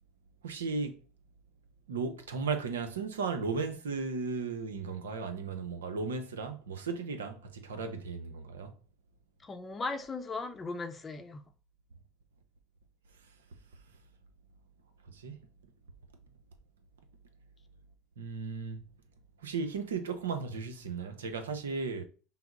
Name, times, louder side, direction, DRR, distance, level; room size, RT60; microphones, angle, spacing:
voice 1, 0.4-1.0 1.9-8.7 15.1-15.4 18.2-18.8 19.4-22.0, right 4 dB, 85° right, 0.7 m, -35 dB
voice 2, 9.4-11.4, left 3 dB, 25° left, 0.6 m, -37 dB
5.7 x 2.0 x 4.0 m
hypercardioid pair, 75°, 0 cm